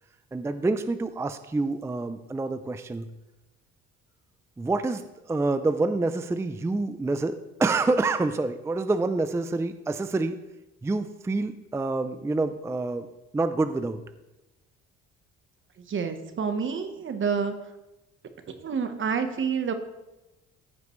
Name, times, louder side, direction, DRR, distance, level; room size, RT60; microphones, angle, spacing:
voice 1, 0.3-3.1 4.6-10.4 10.8-13.1 13.3-14.0, right 3 dB, 10° right, 11 dB, 0.4 m, -27 dB
voice 2, 15.8-17.7 18.6-19.7, right 6 dB, 45° right, 8 dB, 1.1 m, -28 dB
14.5 x 5.2 x 3.2 m, 0.99 s
cardioid pair, 85°, 29 cm